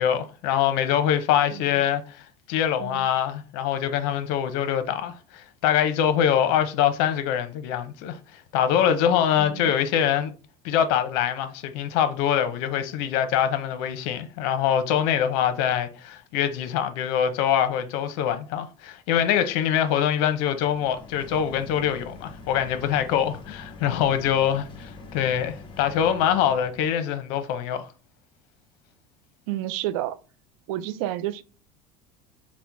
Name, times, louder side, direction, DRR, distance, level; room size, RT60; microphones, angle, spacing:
voice 1, 0.0-2.2 2.5-8.2 8.5-10.3 10.6-27.9, left 9 dB, 70° left, 0.8 m, -24 dB
voice 2, 9.4-9.7 29.5-30.2 30.7-31.4, right 13 dB, 80° right, 0.4 m, -30 dB
sound 1, 20.3-26.9, left 3 dB, 30° left, 0.9 m, -44 dB
4.2 x 2.1 x 4.6 m
cardioid pair, 145°, 17 cm